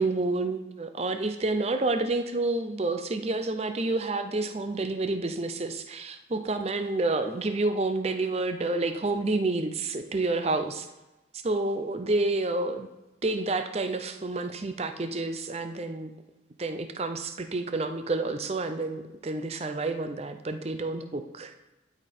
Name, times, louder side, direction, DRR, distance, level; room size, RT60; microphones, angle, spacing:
voice 1, 0.0-10.9 11.3-12.9 13.2-16.1 16.6-21.5, right 2 dB, 30° right, 8 dB, 0.5 m, -29 dB
12.0 x 5.1 x 4.3 m, 1.0 s
head